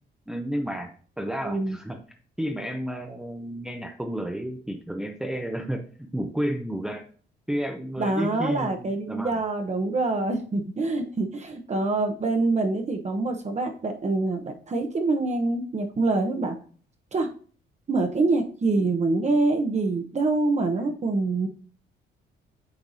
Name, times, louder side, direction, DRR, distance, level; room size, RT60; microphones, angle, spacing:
voice 1, 0.3-2.0 2.4-7.0 7.5-9.3, equal, 5° right, 3 dB, 0.7 m, -31 dB
voice 2, 1.4-1.8 8.0-16.6 17.1-17.3 17.9-21.5, right 3 dB, 35° right, 4 dB, 1.0 m, -25 dB
8.8 x 4.6 x 2.7 m, 0.43 s
cardioid pair, 90°, 20 cm